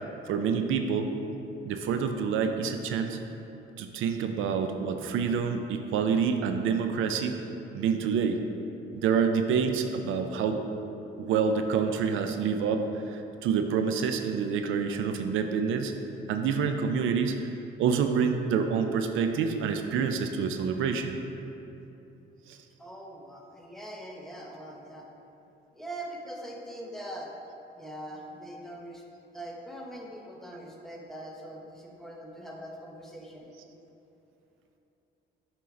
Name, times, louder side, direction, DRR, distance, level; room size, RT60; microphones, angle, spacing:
voice 1, 0.3-1.2 1.6-3.2 3.8-7.3 7.7-8.4 8.9-10.6 11.2-15.9 16.3-17.3 17.8-21.2 22.5-22.6, right 6 dB, 85° right, 6 dB, 0.5 m, -27 dB
voice 2, 22.8-25.1 25.7-27.3 27.7-29.0 29.3-33.5, right 1 dB, ahead, -2 dB, 1.0 m, -42 dB
6.9 x 4.6 x 3.7 m, 2.9 s
cardioid pair, 90°, 20 cm